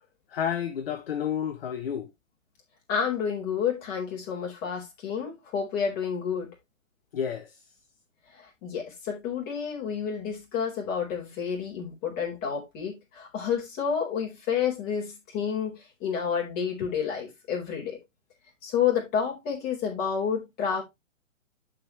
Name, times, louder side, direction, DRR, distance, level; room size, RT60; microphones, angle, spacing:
voice 1, 0.3-2.1 7.1-7.5, left 8 dB, 45° left, 1.2 m, -30 dB
voice 2, 2.9-6.5 8.3-18.0 18.6-20.8, left 7 dB, 25° left, 4.3 m, -30 dB
11.5 x 5.3 x 3.1 m
figure-of-eight pair, 130°, 40 cm